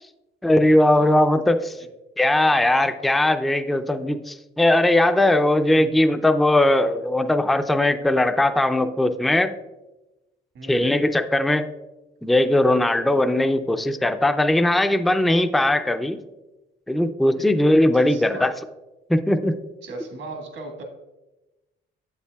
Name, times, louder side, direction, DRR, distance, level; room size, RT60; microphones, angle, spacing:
voice 1, 0.4-1.8 2.2-9.5 10.7-11.7 12.2-16.2 16.9-18.5 19.1-19.6, left 1 dB, ahead, 8 dB, 0.4 m, -19 dB
voice 2, 10.5-10.9 17.4-17.5 17.9-18.5 19.8-20.8, right 2 dB, 75° right, 3 dB, 1.5 m, -37 dB
8.3 x 7.6 x 2.3 m, 1.0 s
cardioid pair, 90°, 20 cm